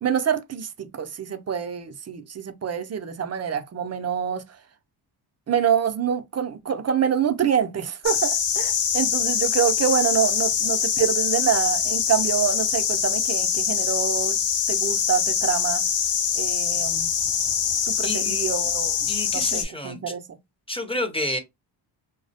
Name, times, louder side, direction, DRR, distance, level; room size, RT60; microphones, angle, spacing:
voice 1, 0.0-4.4 5.5-14.4 14.7-15.8 16.4-17.1 17.9-19.0 19.3-20.4, right 8 dB, 35° right, 0.4 m, -26 dB
sound 1, 8.0-19.6, left 8 dB, 60° left, 0.6 m, -24 dB
voice 2, 18.0-18.6 19.1-20.1 20.7-21.4, left 1 dB, 10° left, 0.6 m, -30 dB
2.4 x 2.0 x 2.7 m
cardioid pair, 65°, 47 cm